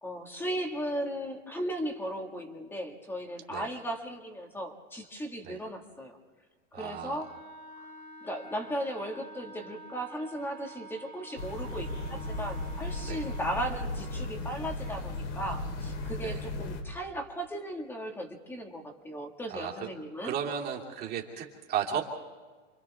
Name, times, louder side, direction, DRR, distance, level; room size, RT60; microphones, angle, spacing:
voice 1, 0.0-6.2 6.7-7.3 8.2-20.3, equal, 5° left, 3 dB, 2.0 m, -36 dB
voice 2, 6.7-7.2 13.0-13.2 16.2-16.4 19.5-19.7 20.2-22.0, right 8 dB, 25° right, -2 dB, 2.9 m, -34 dB
Wind instrument woodwind instrument, 7.2-13.5, right 2 dB, 45° left, 3.5 m, -48 dB
sound 1, 11.4-16.8, left 2 dB, 60° left, 4.0 m, -36 dB
29.0 x 25.0 x 3.6 m, 1.4 s
supercardioid pair, 165°, 36 cm